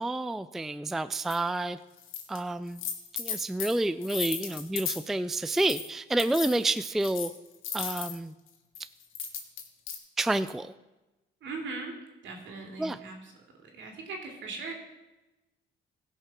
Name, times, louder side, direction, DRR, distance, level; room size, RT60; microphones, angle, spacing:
voice 1, 0.0-1.8 2.3-2.8 3.2-7.3 7.7-8.3 10.2-10.7 12.8-13.0, right 2 dB, ahead, 14 dB, 0.3 m, -29 dB
sound 1, 1.3-1.4 2.0-2.4 2.7-5.1 5.5-5.9 6.2-8.2 8.8-10.0, left 8 dB, 90° left, 1.4 m, -36 dB
voice 2, 11.4-11.9 12.2-13.1 13.6-14.7, right 3 dB, 70° right, 2 dB, 2.8 m, -39 dB
16.0 x 5.6 x 6.0 m, 1.0 s
cardioid pair, 90°, 20 cm